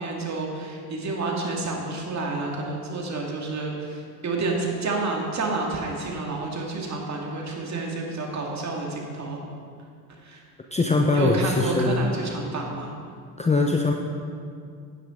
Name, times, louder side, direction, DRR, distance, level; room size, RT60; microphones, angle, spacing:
voice 1, 0.0-9.4 10.2-10.4 11.1-12.9, right 3 dB, 35° right, 0 dB, 2.2 m, -29 dB
voice 2, 10.7-12.0 13.4-13.9, left 3 dB, 15° left, 2 dB, 0.7 m, -21 dB
9.7 x 9.4 x 3.8 m, 2.3 s
hypercardioid pair, 70°, 46 cm